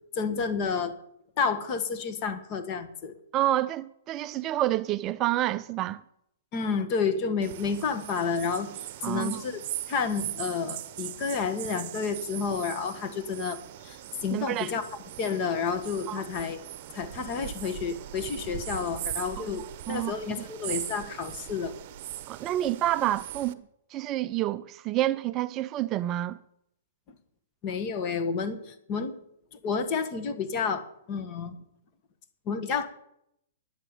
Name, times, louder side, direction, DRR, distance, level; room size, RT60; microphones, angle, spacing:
voice 1, 0.1-1.0 1.4-3.2 6.5-14.9 15.2-16.6 16.9-21.8 27.6-29.1 29.5-31.6 32.4-32.9, left 5 dB, 35° left, 1.4 m, -30 dB
voice 2, 3.3-6.0 9.0-9.4 14.3-14.7 16.1-16.2 19.9-20.1 22.3-23.6 23.9-26.4, right 14 dB, 30° right, 0.4 m, -28 dB
sound 1, 7.4-23.5, right 13 dB, 45° right, 0.8 m, -40 dB
10.0 x 7.7 x 9.1 m
hypercardioid pair, 140°, 0 cm